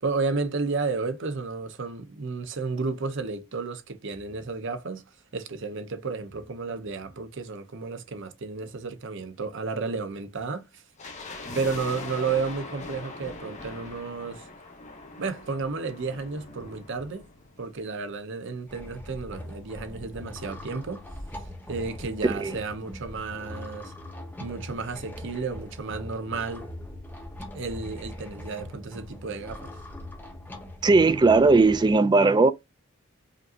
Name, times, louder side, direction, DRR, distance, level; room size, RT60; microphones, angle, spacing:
voice 1, 0.0-5.0 5.3-10.8 11.5-14.5 15.2-17.3 17.6-21.0 21.7-23.9 24.4-26.7 27.5-29.7, right 4 dB, 65° right, 0.7 m, -32 dB
sound 1, 11.0-18.3 18.5-18.6 19.3-21.1 21.4-21.5 21.7-22.0 22.4-22.5, left 2 dB, 35° left, 1.2 m, -42 dB
sound 2, 18.7-31.9, left 1 dB, 10° left, 0.9 m, -41 dB
voice 2, 30.8-32.5, right 3 dB, 20° right, 0.3 m, -18 dB
5.1 x 2.7 x 2.5 m
head